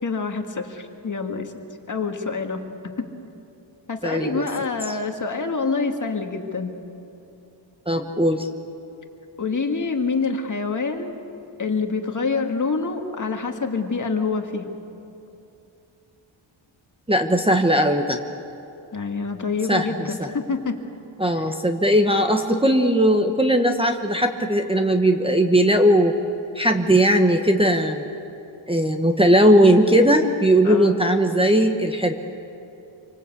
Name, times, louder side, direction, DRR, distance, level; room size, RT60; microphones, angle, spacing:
voice 1, 0.0-1.5 1.9-2.6 3.0-3.1 3.9-6.7 9.4-11.2 11.6-14.7 18.9-20.8 21.4-21.5 30.6-31.0, left 4 dB, 40° left, 4 dB, 2.0 m, -26 dB
voice 2, 4.0-4.5 4.9-5.0 7.9-8.5 17.1-18.2 19.7-20.1 21.2-26.1 26.5-28.0 28.7-32.1, equal, 10° right, 2 dB, 1.0 m, -18 dB
27.0 x 25.0 x 8.4 m, 2.9 s
wide cardioid pair, 165°, 47 cm